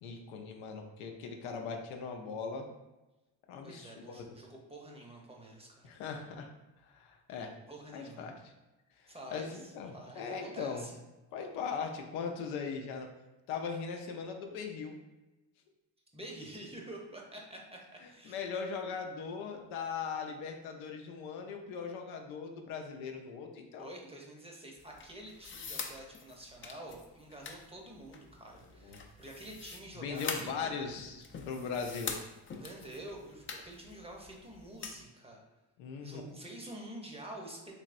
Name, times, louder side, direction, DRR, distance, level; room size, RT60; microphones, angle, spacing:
voice 1, 0.0-2.7 3.5-4.2 5.8-6.5 6.8-7.5 7.9-8.5 9.0-10.9 11.3-13.1 13.5-15.0 18.2-23.9 28.8-29.0 29.9-32.1 35.8-36.2, left 5 dB, 80° left, 3 dB, 0.6 m, -39 dB
voice 2, 3.6-5.9 7.7-8.3 9.1-11.0 16.1-18.4 23.8-30.7 32.6-35.4 36.0-37.6, right 1 dB, 15° right, 0 dB, 0.7 m, -48 dB
sound 1, 24.8-35.0, left 5 dB, 25° left, 0.4 m, -45 dB
3.4 x 3.1 x 2.5 m, 1.1 s
supercardioid pair, 60°, 47 cm